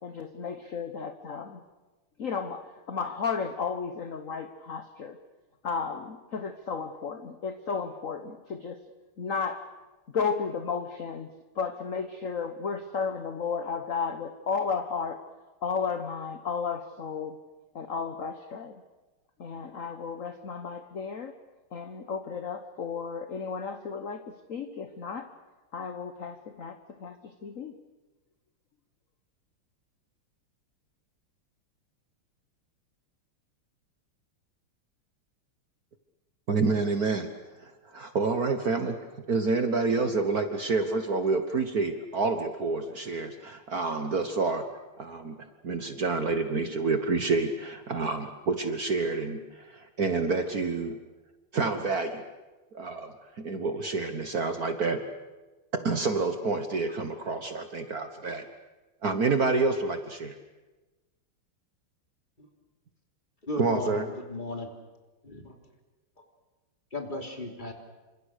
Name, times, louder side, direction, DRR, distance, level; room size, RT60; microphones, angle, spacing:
voice 1, 0.0-1.6 2.2-5.2 5.6-8.8 9.2-9.6 10.1-15.2 15.6-17.4 17.7-18.8 19.4-21.3 21.7-25.3 25.7-27.8, left 5 dB, 45° left, 8 dB, 1.3 m, -33 dB
voice 2, 36.5-37.3 37.6-39.0 39.3-44.6 45.0-45.4 45.6-51.0 51.5-52.2 52.7-55.0 55.8-58.5 59.0-60.4 63.6-64.0, right 3 dB, 45° right, 7 dB, 1.6 m, -28 dB
voice 3, 63.4-64.7 65.2-65.5 66.9-67.7, left 2 dB, 20° left, 2 dB, 3.3 m, -36 dB
28.0 x 26.0 x 6.6 m, 1.2 s
omnidirectional pair, 2.4 m